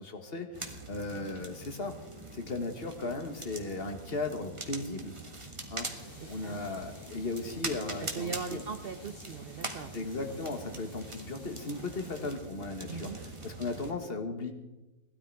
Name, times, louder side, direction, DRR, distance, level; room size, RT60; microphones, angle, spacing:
voice 1, 0.0-1.9 2.3-5.1 5.7-5.9 6.3-8.6 9.9-13.1 13.4-14.5, left 3 dB, 35° left, 7 dB, 1.6 m, -36 dB
sound 1, 0.5-13.9, right 2 dB, 20° right, 1.5 m, -43 dB
sound 2, 6.0-12.3, equal, 15° left, 2.1 m, -53 dB
voice 2, 6.1-6.6 8.0-9.9 12.9-13.2, right 5 dB, 55° right, 8 dB, 0.6 m, -40 dB
18.0 x 13.0 x 4.7 m, 1.1 s
omnidirectional pair, 1.8 m